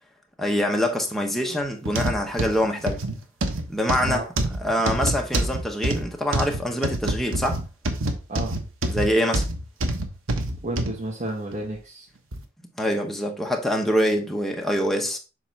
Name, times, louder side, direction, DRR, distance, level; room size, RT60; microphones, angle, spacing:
voice 1, 0.4-3.0 3.7-4.2 4.6-7.6 8.9-9.5 12.8-15.2, equal, ahead, 1.2 m, -24 dB
sound 1, 1.9-11.0 11.5-11.7 12.3-12.4, right 1 dB, 90° right, 1.1 m, -26 dB
voice 2, 10.6-12.1, right 1 dB, 40° right, 1.2 m, -31 dB
7.9 x 2.9 x 5.9 m
head